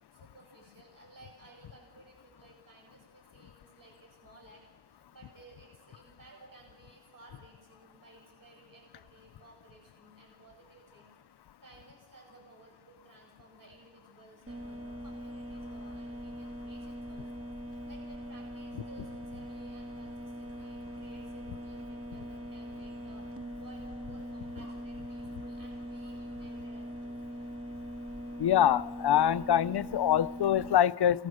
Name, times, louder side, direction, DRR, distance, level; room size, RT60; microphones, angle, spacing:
voice 1, 0.1-11.1 11.6-23.3 23.6-27.5, right 2 dB, 45° right, 0 dB, 7.5 m, -57 dB
sound 1, 14.5-30.7, equal, 30° right, 2.1 m, -42 dB
voice 2, 28.4-31.3, left 10 dB, 60° left, 17 dB, 0.6 m, -25 dB
28.0 x 20.0 x 6.5 m, 1.2 s
wide cardioid pair, 110°, 45 cm